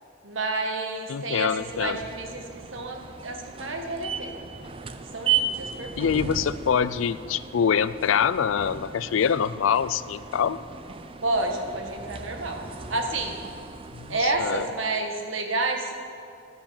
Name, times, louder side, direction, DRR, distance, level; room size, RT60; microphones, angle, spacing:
voice 1, 0.2-2.4 2.7-4.5 5.1-6.1 11.2-12.6 12.9-13.4 14.1-15.9, right 2 dB, 75° right, 3 dB, 1.4 m, -29 dB
voice 2, 1.1-2.0 6.0-10.6 13.9-14.7, left 7 dB, 80° left, 16 dB, 0.4 m, -25 dB
sound 1, 1.5-15.0, right 6 dB, 25° right, 0.4 m, -35 dB
11.5 x 7.2 x 7.3 m, 2.4 s
head